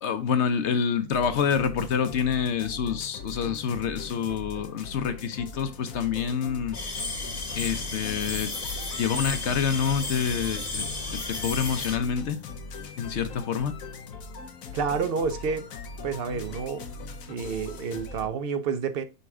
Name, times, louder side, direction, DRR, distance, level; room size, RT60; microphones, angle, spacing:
voice 1, 0.0-6.8 7.5-8.5 9.0-10.8 11.1-12.4 13.0-13.7, left 7 dB, 60° left, 1.0 m, -27 dB
sound 1, 1.1-18.3, left 3 dB, 80° left, 1.3 m, -40 dB
sound 2, 6.7-12.0, left 3 dB, 30° left, 1.2 m, -33 dB
voice 2, 14.7-15.7 16.0-16.9 17.3-19.0, right 5 dB, 50° right, 0.8 m, -29 dB
5.5 x 3.7 x 4.7 m
omnidirectional pair, 1.4 m